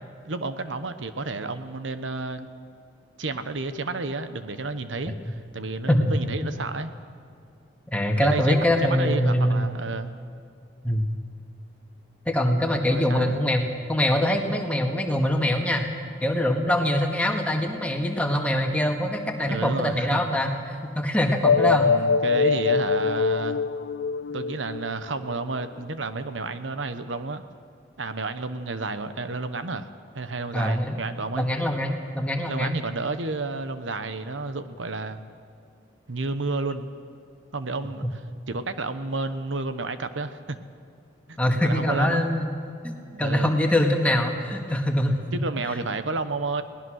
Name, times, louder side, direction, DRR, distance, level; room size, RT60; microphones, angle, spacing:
voice 1, 0.2-2.5 3.2-6.9 8.2-10.1 12.9-13.4 19.5-20.3 21.6-23.6 24.3-27.4 28.0-29.9 30.1-31.5 32.5-35.2 36.1-36.9 37.5-38.2 38.5-40.6 41.3-42.2 43.1-43.5 45.3-46.6, right 3 dB, 90° right, 10 dB, 1.1 m, -31 dB
voice 2, 7.9-9.7 10.8-11.1 12.3-15.9 16.2-21.9 30.5-31.0 31.3-32.8 41.4-42.5 42.8-42.9 43.2-45.2, left 1 dB, 5° left, 2 dB, 1.9 m, -23 dB
sound 1, 21.4-25.3, left 5 dB, 60° left, 0.4 m, -23 dB
22.0 x 18.5 x 6.5 m, 2.5 s
head